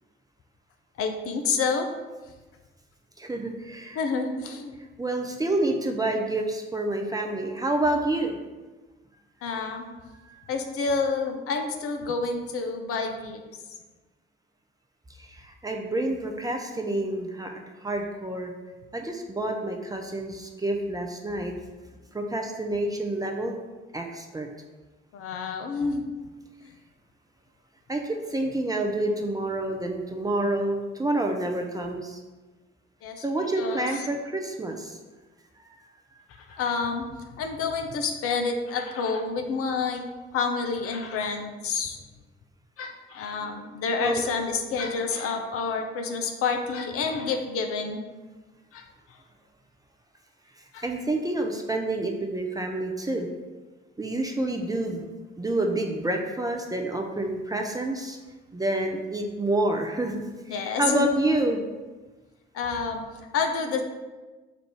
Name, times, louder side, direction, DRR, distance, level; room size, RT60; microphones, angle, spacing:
voice 1, 1.0-1.9 3.9-4.7 9.4-9.9 10.5-13.4 25.1-26.1 33.0-33.2 33.6-34.0 36.6-37.0 37.4-40.0 40.3-42.0 42.8-48.0 48.7-48.9 50.7-50.8 60.5-61.3 62.5-63.0 63.3-63.8, left 4 dB, 50° left, 4 dB, 0.6 m, -28 dB
voice 2, 3.2-4.0 5.0-8.4 10.3-10.4 15.2-18.5 18.9-21.5 22.1-23.6 23.9-24.5 27.9-32.2 33.2-35.0 44.0-44.2 50.8-53.3 54.0-55.0 55.4-58.2 58.5-60.2 60.5-61.6, right 2 dB, 10° right, 2 dB, 0.5 m, -28 dB
4.3 x 2.5 x 4.7 m, 1.2 s
figure-of-eight pair, 40°, 30 cm